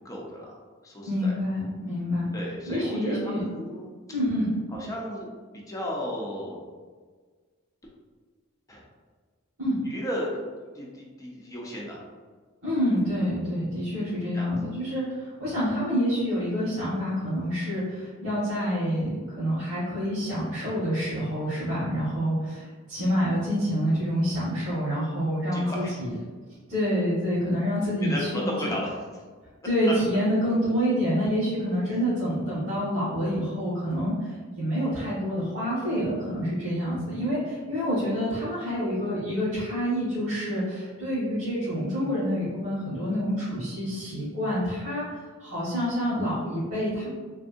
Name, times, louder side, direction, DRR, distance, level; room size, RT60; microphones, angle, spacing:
voice 1, 0.0-0.6 0.8-1.3 2.3-3.9 4.7-5.4 5.7-6.6 8.7-8.8 9.8-10.4 10.7-12.0 14.3-14.5 25.5-25.9 28.0-29.0 29.8-29.9, equal, 15° left, -3 dB, 0.5 m, -34 dB
voice 2, 1.0-2.3 2.6-3.4 4.1-4.5 9.6-9.8 12.6-26.1 26.7-28.4 29.6-45.0 45.4-47.1, equal, 90° right, -12 dB, 1.4 m, -27 dB
3.5 x 2.6 x 2.5 m, 1.5 s
head